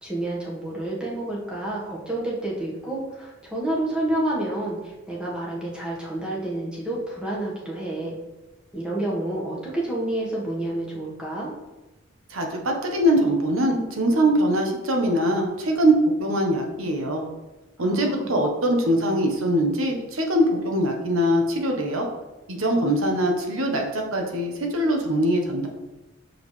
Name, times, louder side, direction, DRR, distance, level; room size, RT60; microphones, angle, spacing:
voice 1, 0.0-8.2 8.7-11.5 17.8-18.3, right 1 dB, 5° right, -5 dB, 1.4 m, -29 dB
voice 2, 12.3-17.2 17.8-22.1 22.5-25.7, right 1 dB, 90° right, 2 dB, 1.1 m, -22 dB
6.3 x 5.2 x 3.2 m, 1.1 s
head